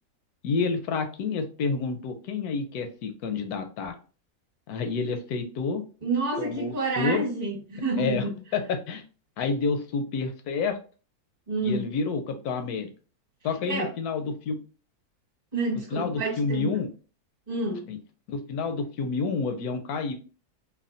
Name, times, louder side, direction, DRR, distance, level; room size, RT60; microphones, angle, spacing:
voice 1, 0.4-4.0 4.7-5.8 6.4-7.3 8.0-8.3 8.5-9.0 9.4-10.8 11.6-12.9 13.4-14.6 15.9-16.9 17.9-18.0 18.3-20.1, left 4 dB, 80° left, 1.1 m, -29 dB
voice 2, 6.0-8.3 11.5-11.9 13.7-13.9 15.5-16.8 17.5-17.9, right 3 dB, 30° right, 1.2 m, -29 dB
3.4 x 2.2 x 2.5 m
omnidirectional pair, 1.6 m